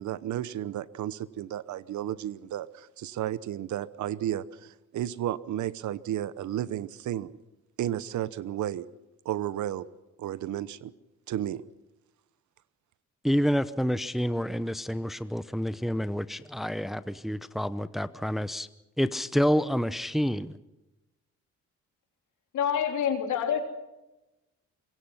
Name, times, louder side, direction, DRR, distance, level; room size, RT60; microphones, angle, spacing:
voice 1, 0.0-7.4 7.8-8.9 9.2-9.9 10.2-10.9 11.3-11.6, right 12 dB, 70° right, 17 dB, 1.0 m, -33 dB
voice 2, 13.2-18.7 19.0-20.6, equal, ahead, 13 dB, 0.8 m, -28 dB
voice 3, 22.5-23.6, left 8 dB, 75° left, 4 dB, 3.6 m, -27 dB
25.0 x 22.5 x 5.8 m, 1.0 s
cardioid pair, 90°, 30 cm